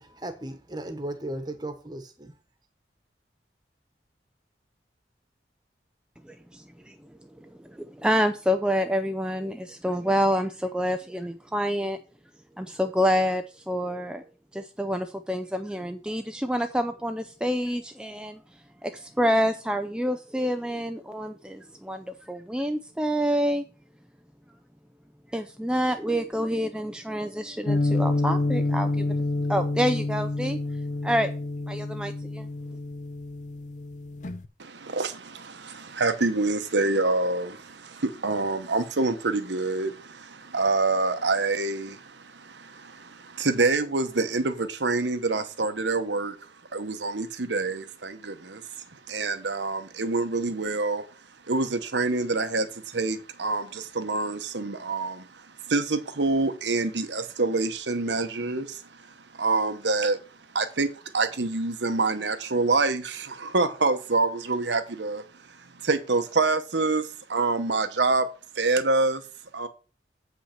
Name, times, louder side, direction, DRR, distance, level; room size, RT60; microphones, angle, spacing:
voice 1, 0.0-2.3, right 1 dB, 25° right, 1.2 m, -36 dB
voice 2, 6.3-6.9 7.7-12.0 12.6-14.2 14.5-18.4 18.8-23.6 25.3-29.1 29.5-30.6 31.0-31.3 31.7-32.5, equal, 5° right, 0.4 m, -27 dB
sound 1, 27.7-34.5, left 2 dB, 45° left, 0.6 m, -28 dB
voice 3, 34.6-51.1 51.4-68.3 68.5-69.2 69.5-69.7, right 3 dB, 85° right, 1.1 m, -27 dB
7.9 x 5.6 x 5.8 m
head